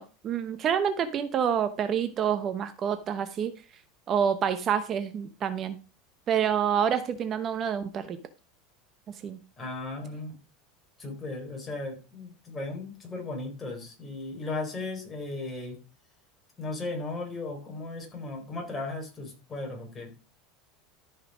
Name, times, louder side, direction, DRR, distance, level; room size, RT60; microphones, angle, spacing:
voice 1, 0.0-3.5 4.1-5.8 6.3-8.2 9.2-9.4, right 8 dB, 35° right, 10 dB, 0.9 m, -27 dB
voice 2, 9.6-10.4 11.0-15.8 16.6-20.1, left 2 dB, 15° left, 1 dB, 4.4 m, -36 dB
13.5 x 5.8 x 5.1 m, 0.33 s
supercardioid pair, 135°, 0 cm